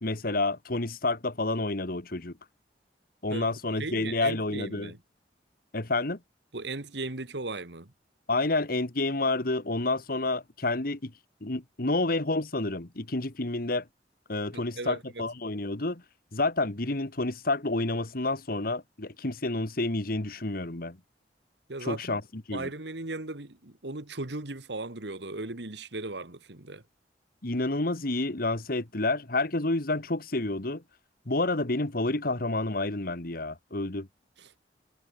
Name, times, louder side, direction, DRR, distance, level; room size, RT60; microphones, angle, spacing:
voice 1, 0.0-2.3 3.2-4.9 5.7-6.2 8.3-11.1 11.4-13.9 14.3-16.0 16.3-21.0 21.8-22.2 22.5-22.7 27.4-30.8 31.3-34.1, left 2 dB, 55° left, 1.9 m, -29 dB
voice 2, 3.3-5.0 6.5-7.9 14.5-15.2 21.7-22.2 22.5-26.8 34.4-34.5, right 2 dB, 75° right, 1.9 m, -37 dB
head